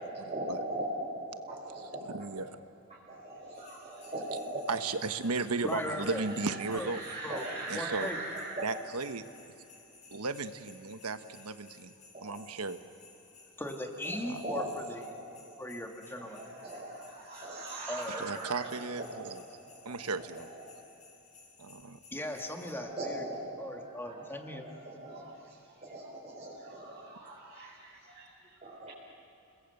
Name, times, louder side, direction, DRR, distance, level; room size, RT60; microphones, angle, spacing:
voice 1, 0.0-2.3 2.9-4.9 5.8-8.7 12.1-12.4 14.0-15.6 16.1-20.9 22.7-28.9, right 1 dB, 30° right, -5 dB, 4.5 m, -41 dB
voice 2, 2.1-2.5 4.7-7.0 7.7-8.1 8.6-9.2 10.1-11.9 12.2-12.8 14.3-14.4 18.1-19.4 19.8-20.5 21.6-22.0, right 4 dB, 80° right, 9 dB, 1.2 m, -35 dB
sound 1, 3.5-22.7, left 4 dB, 35° left, 6.0 m, -58 dB
voice 3, 5.6-6.2 6.7-6.9 7.2-7.5 7.7-8.2 13.6-15.0 15.6-16.4 17.9-18.4 22.1-23.2 23.6-24.6, left 1 dB, 10° left, 2 dB, 2.2 m, -38 dB
29.5 x 21.0 x 8.0 m, 2.9 s
head